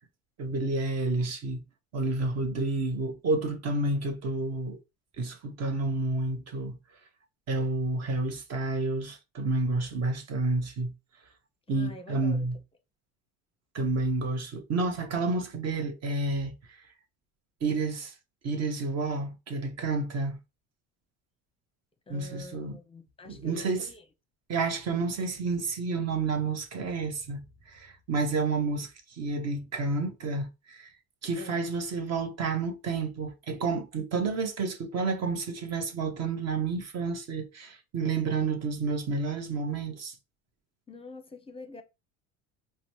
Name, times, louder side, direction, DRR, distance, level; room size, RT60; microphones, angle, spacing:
voice 1, 0.4-1.6 1.9-4.8 5.2-6.8 7.5-10.9 11.7-12.6 13.7-16.8 17.6-18.1 18.4-20.4 22.1-22.8 23.2-23.9 24.5-30.9 31.2-40.1, right 3 dB, 45° right, 1.1 m, -30 dB
voice 2, 11.7-12.5 22.1-24.0 31.4-31.7 40.9-41.8, left 2 dB, 15° left, 0.7 m, -46 dB
4.9 x 2.2 x 3.0 m
supercardioid pair, 100°, 36 cm